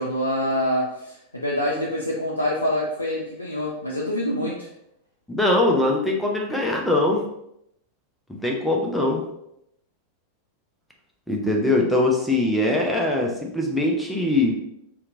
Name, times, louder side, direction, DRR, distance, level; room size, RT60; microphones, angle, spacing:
voice 1, 0.0-4.7, left 1 dB, 85° left, -4 dB, 0.4 m, -26 dB
voice 2, 5.3-7.2 8.4-9.2 11.3-14.6, left 2 dB, ahead, -1 dB, 0.5 m, -22 dB
2.8 x 2.2 x 2.6 m, 0.78 s
figure-of-eight pair, 90°, 0 cm